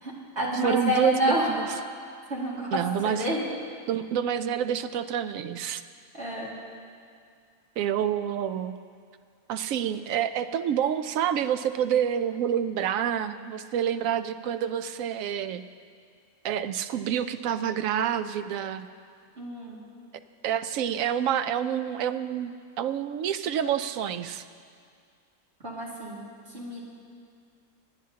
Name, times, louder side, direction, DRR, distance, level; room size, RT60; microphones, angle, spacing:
voice 1, 0.0-1.5 2.3-2.8 3.2-3.4 6.1-6.5 19.4-19.8 25.6-26.8, equal, 45° right, -6 dB, 2.6 m, -29 dB
voice 2, 0.6-1.7 2.7-3.3 3.9-5.8 7.8-8.8 9.5-15.6 16.4-18.9 20.4-24.4, right 9 dB, 70° right, 11 dB, 0.9 m, -28 dB
29.0 x 9.7 x 2.8 m, 2.2 s
omnidirectional pair, 1.5 m